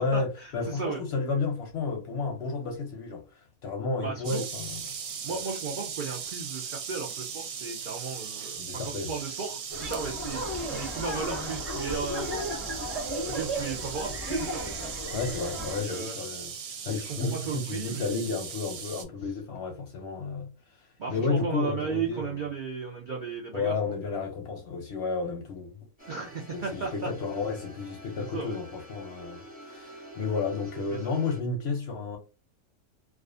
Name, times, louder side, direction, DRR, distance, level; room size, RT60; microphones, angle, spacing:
voice 1, 0.0-4.8 5.3-5.4 8.6-9.1 15.1-16.5 16.8-20.5 20.8-22.4 23.5-26.1 26.5-32.2, left 4 dB, 60° left, 0.7 m, -32 dB
voice 2, 0.7-1.0 4.0-4.5 5.2-12.5 13.3-14.7 15.8-16.1 16.9-18.2 21.0-23.7 26.1-27.1 28.2-28.6 30.9-31.1, right 5 dB, 85° right, 0.4 m, -35 dB
sound 1, 4.2-19.0, right 7 dB, 70° right, 1.0 m, -38 dB
sound 2, 9.7-15.8, equal, 30° right, 0.8 m, -35 dB
sound 3, 26.0-31.4, equal, 15° right, 0.3 m, -47 dB
2.4 x 2.3 x 2.4 m
omnidirectional pair, 1.6 m